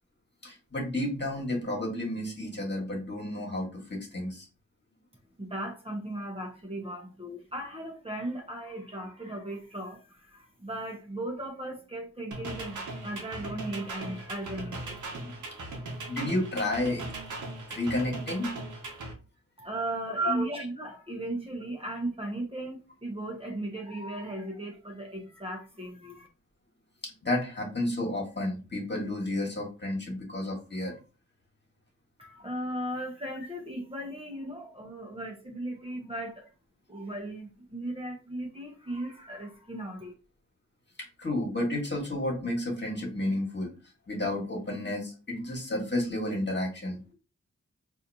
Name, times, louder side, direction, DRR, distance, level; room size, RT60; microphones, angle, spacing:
voice 1, 0.4-4.5 15.2-15.6 16.1-17.1 17.7-18.5 20.2-20.4 27.0-31.0 41.2-43.7 44.1-47.0, left 1 dB, 35° left, 1.6 m, -31 dB
voice 2, 5.4-15.0 19.6-26.3 32.2-36.5 36.9-40.1, right 1 dB, 20° right, 0.9 m, -37 dB
sound 1, 12.3-19.1, right 2 dB, 90° right, 0.8 m, -39 dB
4.1 x 2.6 x 2.7 m
cardioid pair, 60°, 29 cm